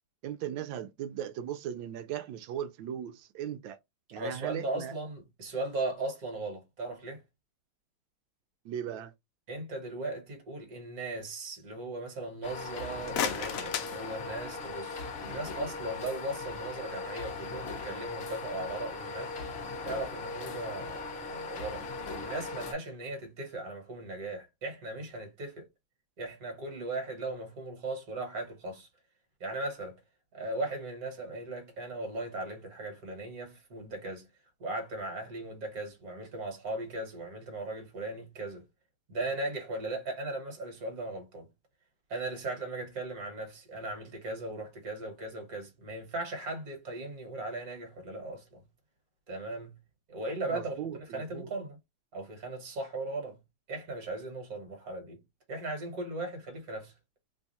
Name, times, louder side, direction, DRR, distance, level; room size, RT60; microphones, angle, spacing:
voice 1, 0.2-3.8 4.1-4.9 8.6-9.1 50.5-51.5, right 10 dB, 80° right, 1.3 m, -38 dB
voice 2, 4.1-7.2 9.5-19.3 19.8-21.9 22.1-25.7 26.2-28.9 29.4-30.0 30.3-34.3 34.6-38.6 39.1-41.5 42.1-48.6 49.3-49.8 50.1-51.8 52.1-53.4 53.7-55.2 55.5-56.9, right 2 dB, 50° right, 1.7 m, -38 dB
sound 1, 12.4-22.7, left 3 dB, 55° left, 0.7 m, -39 dB
sound 2, 12.9-14.8, left 8 dB, 80° left, 0.7 m, -35 dB
3.4 x 2.3 x 4.0 m
omnidirectional pair, 2.2 m